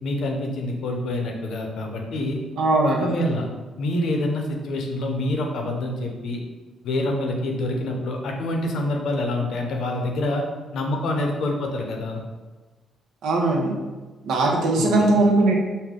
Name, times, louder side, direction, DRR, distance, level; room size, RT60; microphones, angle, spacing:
voice 1, 0.0-2.4 2.8-3.5 3.8-6.4 6.8-10.5 10.7-12.2 14.8-15.1, left 1 dB, 70° left, 2 dB, 0.7 m, -26 dB
voice 2, 2.6-3.0 13.2-13.7 14.2-15.5, right 2 dB, 80° right, 0 dB, 0.8 m, -19 dB
5.3 x 2.2 x 3.6 m, 1.3 s
cardioid pair, 90°, 0 cm